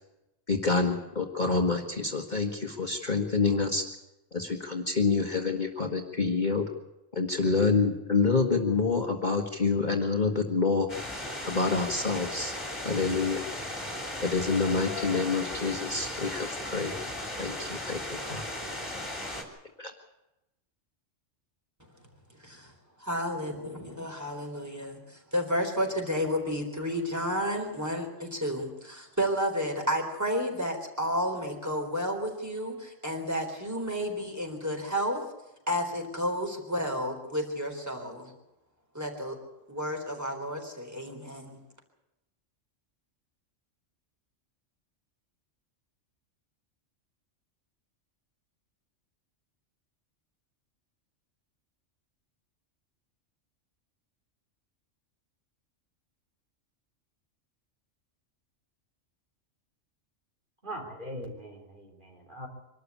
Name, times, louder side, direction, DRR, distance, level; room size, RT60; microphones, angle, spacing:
voice 1, 0.5-3.8 4.3-6.7 7.1-10.9 11.5-12.5 12.8-13.4 14.2-17.0 17.4-18.4 19.8-19.9, left 4 dB, 40° left, 3 dB, 1.6 m, -27 dB
sound 1, 10.9-19.4, left 1 dB, 20° left, 3.2 m, -36 dB
voice 2, 23.0-35.2 35.7-38.3 38.9-39.4 39.7-41.6, equal, 15° right, 3 dB, 3.9 m, -31 dB
voice 3, 60.6-62.5, equal, 40° right, 1 dB, 4.0 m, -41 dB
24.5 x 13.0 x 8.5 m, 0.94 s
omnidirectional pair, 1.3 m